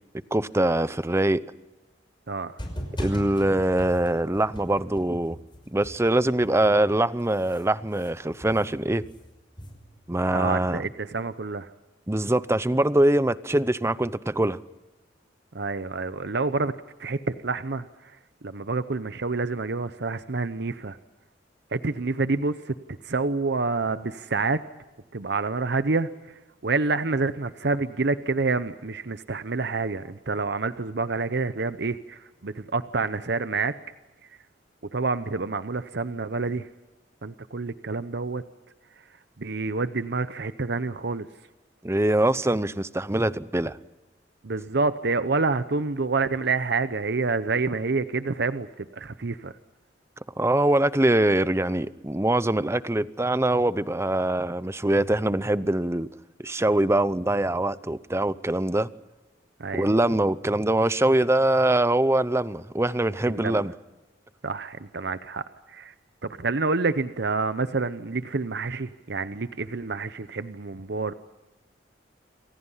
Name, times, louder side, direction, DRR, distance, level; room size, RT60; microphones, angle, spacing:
voice 1, 0.3-1.4 3.0-5.4 5.7-9.0 10.1-10.8 12.1-14.6 41.8-43.8 50.4-56.1 56.4-58.9 59.7-63.7, right 1 dB, 15° right, 0.8 m, -23 dB
voice 2, 2.3-2.6 10.3-11.7 15.5-16.7 17.0-18.1 18.4-21.0 21.7-22.7 23.0-24.6 25.1-33.7 34.9-36.7 37.2-38.4 39.4-41.3 44.4-49.5 59.6-59.9 63.3-63.6 64.4-65.9 66.2-71.1, right 3 dB, 65° right, 0.8 m, -28 dB
sound 1, 2.6-6.9 7.2-10.1, equal, 25° left, 5.8 m, -39 dB
28.5 x 25.0 x 5.7 m
head